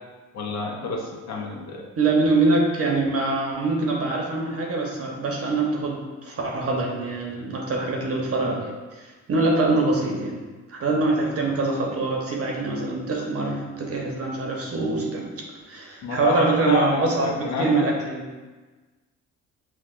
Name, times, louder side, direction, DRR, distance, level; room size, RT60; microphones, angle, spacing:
voice 1, 0.3-1.9 16.0-17.9, left 3 dB, 60° left, 0 dB, 0.7 m, -28 dB
voice 2, 2.0-8.7 9.0-10.4 10.7-18.2, right 3 dB, 50° right, -1 dB, 1.0 m, -24 dB
6.0 x 2.4 x 2.4 m, 1.3 s
cardioid pair, 90°, 30 cm